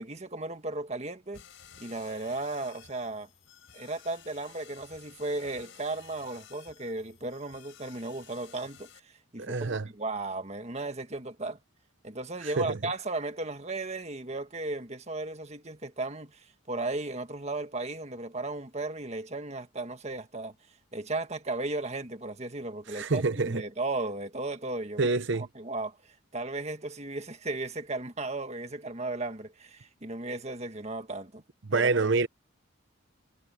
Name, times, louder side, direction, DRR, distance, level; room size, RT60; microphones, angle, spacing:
voice 1, 0.0-1.4 1.8-3.3 3.7-11.6 12.0-20.5 20.9-31.4 31.7-31.9, right 2 dB, 30° right, 1.6 m, -35 dB
sound 1, 1.3-9.0, left 8 dB, 60° left, 5.5 m, -54 dB
voice 2, 9.4-9.9 12.4-12.8 22.9-23.6 25.0-25.5 31.7-32.3, right 3 dB, 55° right, 0.8 m, -27 dB
head